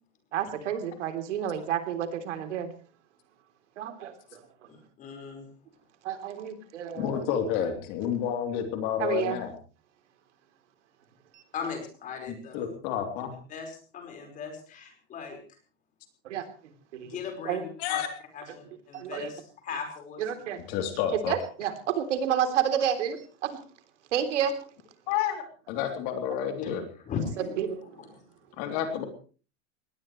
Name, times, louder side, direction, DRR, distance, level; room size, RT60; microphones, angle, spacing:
voice 1, 0.3-2.7 3.8-4.4 6.0-7.2 9.0-9.4 11.3-11.4 16.2-16.5 16.9-17.1 17.5-17.6 18.9-19.3 20.2-20.6 21.3-23.5 24.1-24.6 27.6-27.8, right 9 dB, 80° right, 7 dB, 3.6 m, -30 dB
voice 2, 4.7-5.5 11.5-12.7 13.5-15.4 17.0-18.0 18.3-20.2 26.6-26.8 27.0-27.6 28.0-28.1, left 6 dB, 20° left, 4 dB, 5.0 m, -38 dB
voice 3, 6.9-9.5 12.3-13.3 17.8-18.1 20.7-21.3 25.1-26.8 28.6-29.0, left 9 dB, 40° left, 5 dB, 3.4 m, -30 dB
21.5 x 19.5 x 3.2 m, 0.38 s
supercardioid pair, 170°, 36 cm